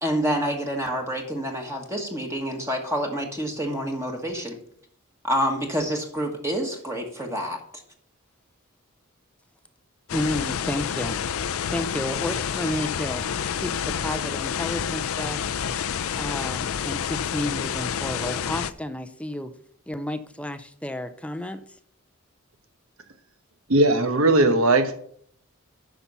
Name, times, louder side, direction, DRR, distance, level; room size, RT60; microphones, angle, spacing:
voice 1, 0.0-4.6 5.2-7.6, equal, 15° right, 1.4 m, -27 dB
sound 1, 10.1-18.7, left 8 dB, 75° left, 0.5 m, -29 dB
voice 2, 10.1-11.2 11.7-13.2 13.5-15.6 16.2-19.5 19.9-21.7, left 1 dB, 5° left, 0.5 m, -31 dB
voice 3, 23.7-25.0, right 2 dB, 70° right, 1.1 m, -18 dB
9.9 x 5.9 x 5.5 m
head